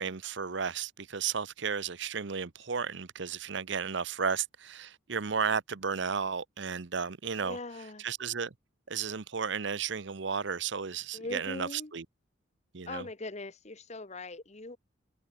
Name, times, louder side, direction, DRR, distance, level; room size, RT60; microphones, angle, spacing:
voice 1, 0.0-7.6 8.0-8.5 8.9-12.0 12.7-13.1, right 6 dB, 60° right, 0.8 m, -33 dB
voice 2, 7.4-8.0 11.1-11.9 12.9-14.8, left 2 dB, 35° left, 1.1 m, -41 dB
head